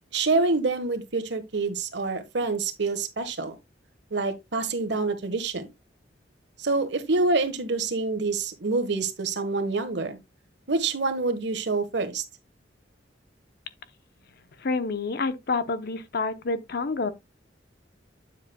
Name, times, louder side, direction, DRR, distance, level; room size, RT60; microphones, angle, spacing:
voice 1, 0.1-3.6 4.1-5.7 6.6-10.2 10.7-12.2, right 3 dB, 65° right, 1.3 m, -26 dB
voice 2, 14.6-17.1, left 3 dB, 55° left, 0.8 m, -28 dB
9.3 x 7.4 x 2.2 m
head